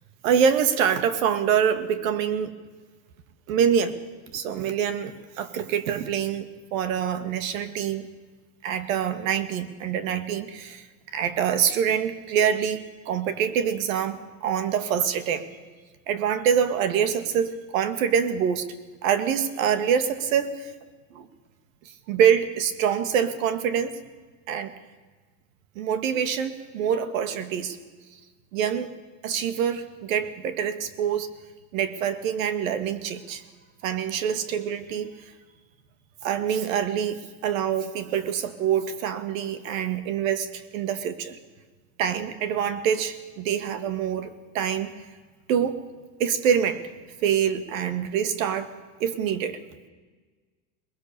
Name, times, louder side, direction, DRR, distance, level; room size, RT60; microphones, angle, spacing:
voice 1, 0.2-2.5 3.5-4.0 4.3-6.5 6.7-8.1 8.6-10.9 11.1-15.5 16.1-18.7 19.0-20.7 21.1-21.3 22.1-24.0 24.5-24.7 25.8-27.8 28.5-29.0 29.2-31.3 31.7-33.4 33.8-35.1 36.2-41.4 42.0-44.9 45.5-45.9 46.2-46.9 47.2-48.7 49.0-49.6, right 8 dB, 65° right, 11 dB, 2.1 m, -25 dB
22.0 x 21.0 x 6.9 m, 1.4 s
supercardioid pair, 165°, 43 cm